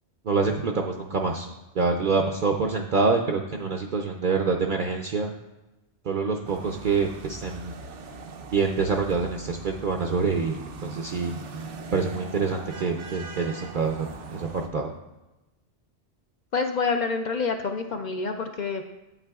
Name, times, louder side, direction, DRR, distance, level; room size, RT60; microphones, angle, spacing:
voice 1, 0.3-1.5 1.8-5.3 6.1-7.7 8.5-10.5 10.8-11.3 11.9-14.1 14.3-14.9, right 4 dB, 55° right, 2 dB, 0.6 m, -26 dB
sound 1, 6.4-14.7, right 4 dB, 90° right, 1.0 m, -41 dB
voice 2, 16.5-18.8, left 4 dB, 60° left, 5 dB, 0.5 m, -27 dB
9.1 x 8.3 x 2.3 m, 1.0 s
omnidirectional pair, 1.2 m